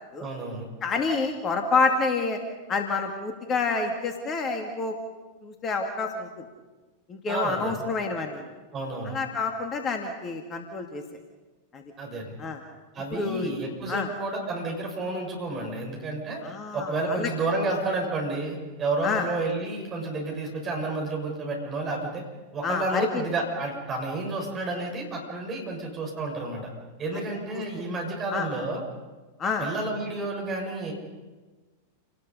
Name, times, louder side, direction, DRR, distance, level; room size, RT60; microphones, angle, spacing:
voice 1, 0.2-0.7 7.3-7.8 8.7-9.2 12.0-12.3 12.9-16.4 16.7-22.2 22.5-26.7 27.0-28.8 29.6-30.9, right 2 dB, 25° right, 0 dB, 6.7 m, -30 dB
voice 2, 0.8-2.4 2.7-5.0 5.4-6.4 7.1-8.5 9.1-11.0 11.7-11.8 12.4-12.6 13.1-13.5 13.9-14.1 16.4-17.3 19.0-19.3 22.6-23.2 28.3-28.5 29.4-29.7, left 4 dB, 25° left, 4 dB, 2.3 m, -28 dB
29.0 x 19.0 x 5.5 m, 1.3 s
figure-of-eight pair, 90°, 0 cm